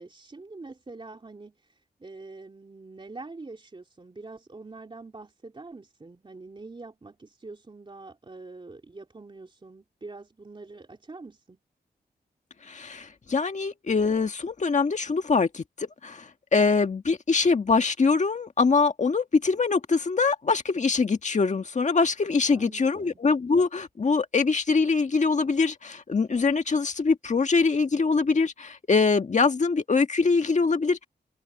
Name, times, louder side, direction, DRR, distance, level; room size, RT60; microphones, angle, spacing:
voice 1, 0.0-11.6 22.5-23.2, right 3 dB, 30° right, 3.2 m, -45 dB
voice 2, 12.7-31.0, left 4 dB, 45° left, 1.7 m, -23 dB
wide cardioid pair, 105°, 17 cm